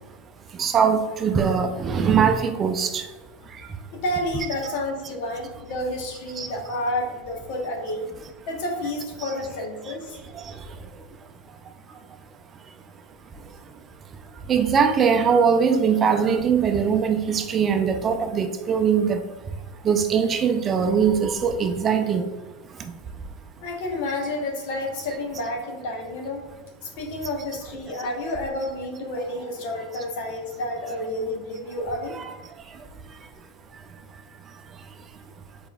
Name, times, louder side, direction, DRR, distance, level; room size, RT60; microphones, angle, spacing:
voice 1, 0.6-3.0 6.4-6.5 14.5-19.2 19.8-22.2 32.1-32.3, right 6 dB, 30° right, 6 dB, 0.5 m, -21 dB
voice 2, 3.9-8.0 8.5-10.2 23.6-26.5 26.8-32.2, left 1 dB, 65° left, 1 dB, 1.2 m, -30 dB
5.0 x 4.3 x 2.4 m, 1.2 s
hypercardioid pair, 100°, 0 cm